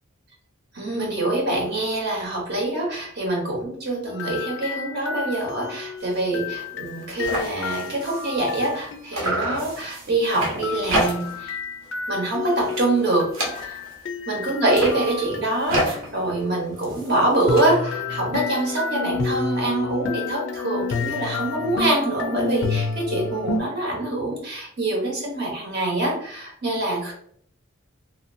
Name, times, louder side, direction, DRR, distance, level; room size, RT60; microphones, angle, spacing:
voice 1, 0.7-11.6 12.1-13.8 14.3-27.1, right 2 dB, 50° right, -1 dB, 0.8 m, -25 dB
sound 1, 4.1-9.4 10.6-16.4 17.5-23.6, left 4 dB, 65° left, 0.4 m, -31 dB
sound 2, 6.0-6.2 6.6-6.7 6.9-8.9 9.1-11.5 11.8-12.2 12.5-14.0 14.6-17.6, right 1 dB, 80° right, 1.0 m, -30 dB
3.1 x 2.4 x 2.5 m, 0.63 s
head